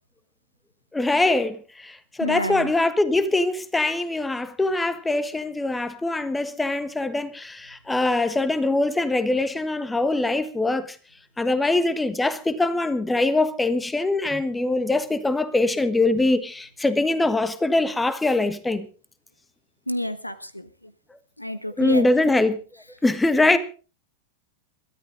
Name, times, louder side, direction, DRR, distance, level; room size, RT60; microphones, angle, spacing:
voice 1, 0.9-11.0 11.4-18.9 21.8-22.6 23.0-23.6, left 2 dB, 10° left, 1.4 m, -23 dB
voice 2, 2.2-2.7 19.9-20.9 21.4-22.3 23.5-23.6, left 1 dB, 85° left, 1.1 m, -30 dB
22.0 x 13.5 x 3.8 m
figure-of-eight pair, 90°, 0 cm